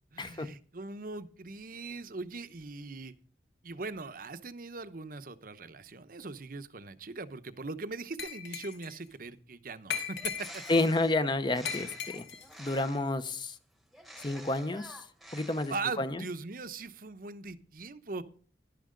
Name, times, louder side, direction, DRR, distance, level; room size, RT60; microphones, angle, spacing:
voice 1, 0.1-3.1 3.6-10.6 11.7-11.9 15.7-18.2, right 3 dB, 50° right, 12 dB, 0.9 m, -40 dB
Glass, 8.2-9.0 9.9-10.8 11.6-12.5, left 7 dB, 65° left, 2.4 m, -38 dB
Bird, 10.1-13.2 13.9-16.1, equal, ahead, 1.2 m, -50 dB
voice 2, 10.7-11.9 12.1-12.2 12.6-13.6 14.2-15.0 15.3-16.2, left 2 dB, 25° left, 11 dB, 0.8 m, -30 dB
12.0 x 11.5 x 3.8 m, 0.42 s
head